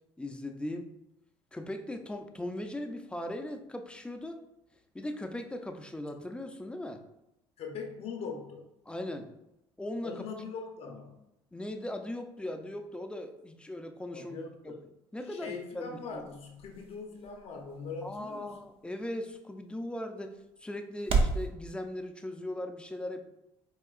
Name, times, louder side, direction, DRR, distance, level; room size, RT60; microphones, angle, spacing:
voice 1, 0.2-0.9 1.5-4.4 4.9-7.0 8.9-9.3 9.8-10.3 11.5-14.8 15.1-16.2 18.0-20.4 20.6-23.2, left 1 dB, 10° left, 6 dB, 0.5 m, -39 dB
voice 2, 7.6-8.7 10.0-11.2 14.1-14.9 15.2-18.6, left 4 dB, 60° left, 2 dB, 0.7 m, -41 dB
sound 1, 15.2-21.5, right 4 dB, 50° right, 0.6 m, -36 dB
4.6 x 2.8 x 2.4 m, 0.87 s
supercardioid pair, 70°, 12 cm